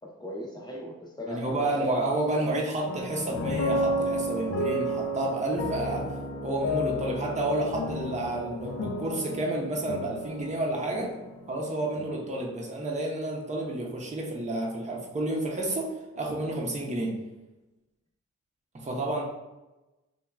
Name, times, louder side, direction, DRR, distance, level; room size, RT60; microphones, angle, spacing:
voice 1, 0.0-1.9, equal, 15° left, -3 dB, 0.7 m, -37 dB
voice 2, 1.3-6.1 6.4-11.1 11.5-17.2 18.7-19.2, right 1 dB, 25° right, -2 dB, 0.6 m, -30 dB
sound 1, 2.9-12.2, equal, 50° left, 0.4 m, -32 dB
2.9 x 2.3 x 2.3 m, 1.0 s
cardioid pair, 50°, 29 cm